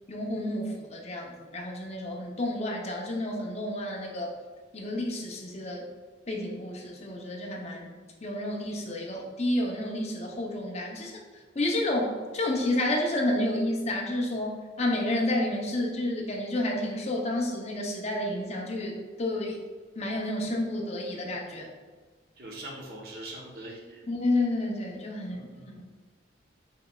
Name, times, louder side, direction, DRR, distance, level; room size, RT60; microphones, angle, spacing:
voice 1, 0.1-4.3 4.7-5.9 6.3-7.9 8.2-11.1 11.5-19.6 20.0-21.7 24.1-25.8, left 1 dB, 35° left, -1 dB, 0.7 m, -30 dB
voice 2, 22.4-24.0 25.3-25.8, right 1 dB, 55° right, -3 dB, 1.0 m, -42 dB
5.7 x 3.3 x 2.3 m, 1.5 s
head